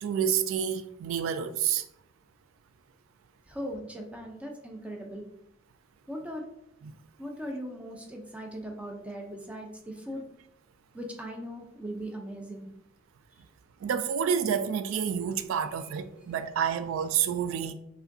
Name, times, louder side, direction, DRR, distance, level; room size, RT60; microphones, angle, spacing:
voice 1, 0.0-1.8 13.8-17.7, right 8 dB, 90° right, 0.3 m, -29 dB
voice 2, 3.5-5.3 6.1-6.4 7.2-10.3 10.9-12.7, equal, 5° right, 0.5 m, -39 dB
4.8 x 2.2 x 2.6 m
head